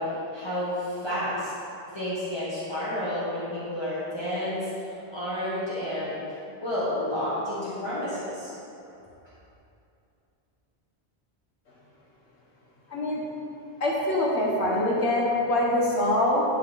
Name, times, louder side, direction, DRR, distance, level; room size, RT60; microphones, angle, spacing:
voice 1, 0.0-1.5 1.9-6.2 6.6-8.5, left 1 dB, 25° left, -11 dB, 1.4 m, -30 dB
voice 2, 12.9-13.2 13.8-16.4, left 1 dB, 85° left, -4 dB, 1.6 m, -24 dB
11.0 x 4.2 x 4.1 m, 2.7 s
omnidirectional pair, 1.1 m